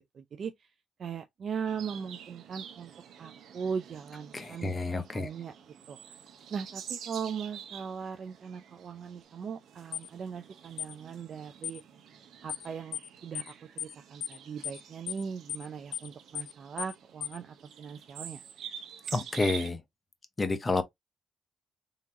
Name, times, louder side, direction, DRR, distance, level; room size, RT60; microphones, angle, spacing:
voice 1, 0.1-0.7 1.0-2.9 3.2-4.7 5.1-5.5 5.9-6.0 6.5-11.8 12.4-18.5, right 6 dB, 55° right, 0.4 m, -39 dB
sound 1, 1.7-19.7, right 8 dB, 75° right, 0.8 m, -48 dB
voice 2, 4.3-5.3 19.1-19.8 20.4-20.8, left 3 dB, 25° left, 0.7 m, -29 dB
sound 2, 9.9-10.1 10.8-10.9 11.6-11.8 12.5-12.7 12.9-13.1 13.3-13.5 13.8-13.9 14.2-14.4 14.6-14.8 15.1-15.2 15.5-15.7 15.9-16.1 16.3-16.5 16.8-16.9 17.2-17.4, left 10 dB, 80° left, 0.4 m, -36 dB
3.7 x 2.8 x 2.6 m
cardioid pair, 90°, 0 cm